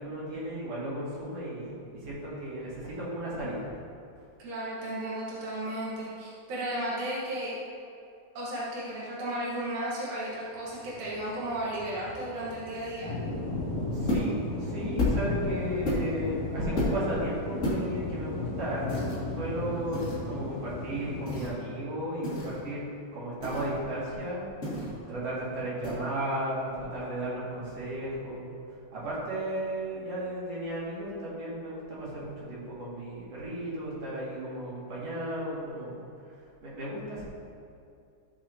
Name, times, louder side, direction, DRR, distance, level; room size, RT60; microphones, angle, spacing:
voice 1, 0.0-1.7 2.0-3.7 13.9-22.8 23.1-24.5 25.1-28.5 28.9-36.0 36.6-37.2, right 1 dB, 45° right, -7 dB, 2.4 m, -34 dB
voice 2, 4.4-7.6 8.3-13.1, right 1 dB, 75° right, -7 dB, 1.7 m, -34 dB
sound 1, 10.7-21.4, left 2 dB, 50° left, 2.8 m, -35 dB
sound 2, 14.1-14.4 15.0-15.3 15.8-16.3 16.7-17.1 17.6-17.8 18.9-19.2 19.9-20.2 21.2-21.5 22.2-22.6 23.4-23.8 24.6-25.0 25.8-25.9, left 1 dB, 80° left, 0.7 m, -31 dB
14.0 x 6.8 x 2.8 m, 2.5 s
omnidirectional pair, 5.6 m